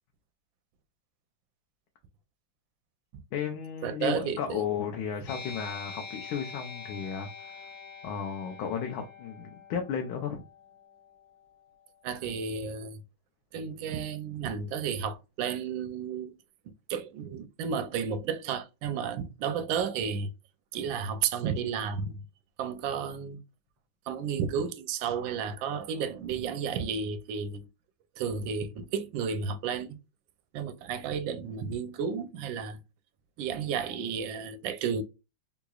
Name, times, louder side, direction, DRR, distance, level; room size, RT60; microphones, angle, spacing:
voice 1, 3.3-7.7 8.0-10.4, left 7 dB, 90° left, 1.5 m, -34 dB
voice 2, 3.8-4.6 12.0-13.0 13.5-16.4 16.9-20.3 20.7-22.2 22.6-23.4 24.1-27.7 28.2-30.0 30.5-32.8 33.4-35.0, right 6 dB, 80° right, 1.3 m, -32 dB
sound 1, 5.3-12.3, left 5 dB, 50° left, 1.1 m, -46 dB
3.7 x 3.0 x 2.3 m
omnidirectional pair, 2.2 m